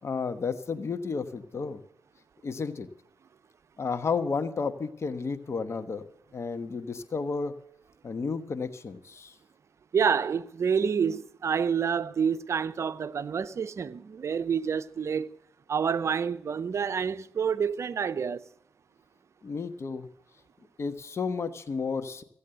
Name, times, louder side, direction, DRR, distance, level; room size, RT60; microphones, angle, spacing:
voice 1, 0.0-1.8 2.4-2.9 3.8-6.1 6.3-7.5 8.0-9.3 19.4-20.1 20.8-22.2, left 5 dB, 55° left, 1.1 m, -32 dB
voice 2, 9.9-15.4 15.7-18.4, right 6 dB, 60° right, 0.6 m, -28 dB
15.5 x 8.4 x 7.7 m
supercardioid pair, 45°, 6 cm